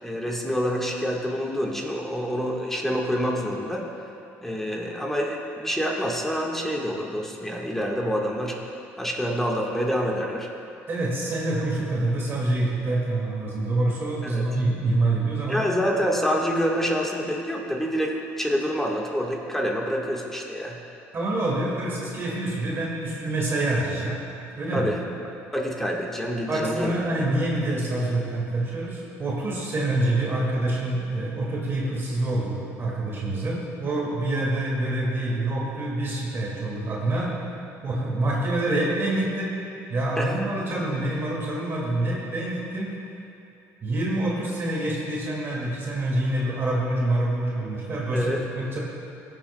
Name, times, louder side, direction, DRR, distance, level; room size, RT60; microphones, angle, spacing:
voice 1, 0.0-3.8 4.4-8.6 9.0-10.5 14.2-14.4 15.5-20.8 24.7-25.0 25.5-27.0 40.2-40.3 48.1-48.4, equal, 5° left, -1 dB, 1.4 m, -27 dB
voice 2, 10.9-15.7 21.1-24.2 24.5-24.9 26.5-37.3 37.8-39.5 39.9-42.9 43.8-48.8, right 2 dB, 40° right, -4 dB, 2.1 m, -26 dB
19.5 x 7.5 x 2.2 m, 2.8 s
supercardioid pair, 85°, 6 cm